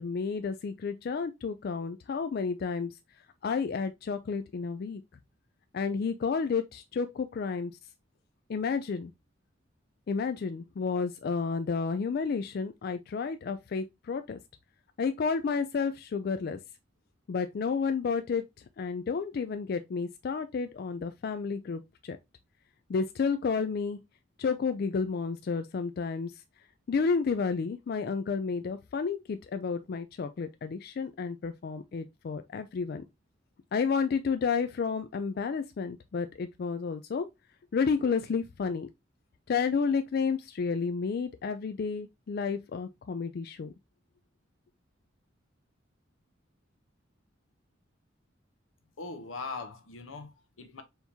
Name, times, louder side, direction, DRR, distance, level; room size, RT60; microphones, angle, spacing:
voice 1, 0.0-2.9 3.4-5.0 5.7-7.7 8.5-9.1 10.1-14.4 15.0-16.6 17.3-18.4 18.8-22.2 22.9-24.0 24.4-26.3 26.9-33.0 33.7-37.3 37.7-38.9 39.5-43.7, left 5 dB, 50° left, 0.3 m, -31 dB
voice 2, 49.0-50.8, left 4 dB, 90° left, 0.8 m, -40 dB
4.4 x 3.6 x 2.7 m
head